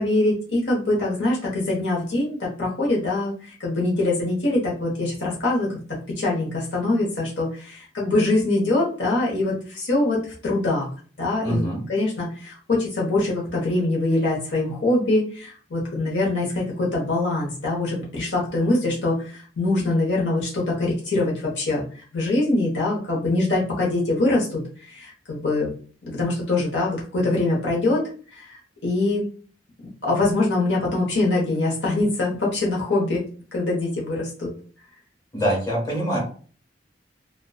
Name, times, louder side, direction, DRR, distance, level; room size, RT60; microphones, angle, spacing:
voice 1, 0.0-5.8 6.2-10.9 11.2-21.8 22.1-24.6 24.9-25.7 26.1-28.0 28.3-29.2 30.0-33.2 33.5-34.5, left 2 dB, 75° left, -3 dB, 0.8 m, -23 dB
voice 2, 11.4-11.8 35.3-36.2, right 1 dB, 20° left, -3 dB, 1.3 m, -24 dB
2.4 x 2.1 x 2.3 m, 0.41 s
head